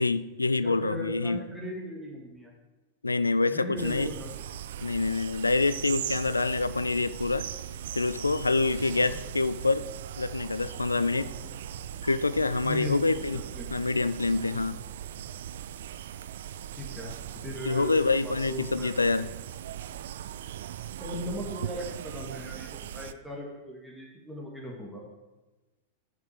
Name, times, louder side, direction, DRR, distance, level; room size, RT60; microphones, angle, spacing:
voice 1, 0.0-1.4 3.0-4.1 4.8-7.5 8.0-9.9 10.2-11.3 12.0-13.4 13.7-14.8 17.6-19.3, left 3 dB, 80° left, 15 dB, 0.3 m, -26 dB
voice 2, 0.6-2.5 3.5-4.4 8.9-9.2 11.4-11.5 12.6-13.7 16.7-18.0 18.2-18.9 19.2-19.3 21.0-25.0, left 1 dB, ahead, -3 dB, 1.9 m, -38 dB
sound 1, 3.8-23.1, right 10 dB, 60° right, 0.3 m, -39 dB
6.9 x 6.0 x 6.7 m, 1.1 s
figure-of-eight pair, 90°, 0 cm